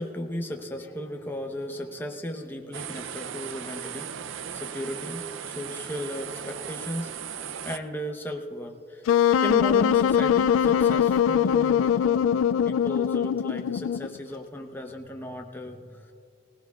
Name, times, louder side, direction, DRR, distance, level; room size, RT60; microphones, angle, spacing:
voice 1, 0.0-4.1 4.5-7.1 7.6-9.0 9.4-16.1, equal, 10° left, 3 dB, 0.8 m, -35 dB
sound 1, 2.7-7.8, right 8 dB, 75° right, 0.5 m, -37 dB
Wind instrument woodwind instrument, 9.1-14.2, left 8 dB, 90° left, 0.3 m, -22 dB
20.0 x 18.0 x 2.3 m, 2.5 s
head